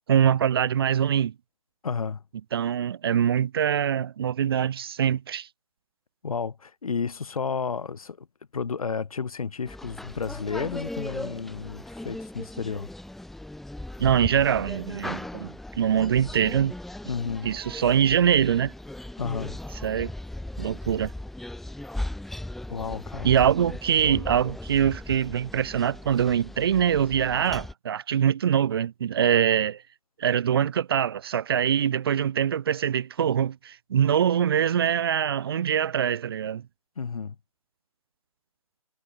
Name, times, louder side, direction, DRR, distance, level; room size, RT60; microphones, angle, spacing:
voice 1, 0.1-1.3 2.5-5.5 14.0-16.7 17.4-18.7 19.8-20.1 20.6-21.1 23.2-29.8 30.2-36.6, right 9 dB, 40° right, 0.9 m, -23 dB
voice 2, 1.8-2.2 6.2-8.3 8.5-12.9 17.1-17.5 19.2-19.6 22.7-23.4 37.0-37.4, left 5 dB, 75° left, 3.2 m, -32 dB
sound 1, 9.7-27.7, left 1 dB, ahead, 2.7 m, -38 dB
hypercardioid pair, 160°, 19 cm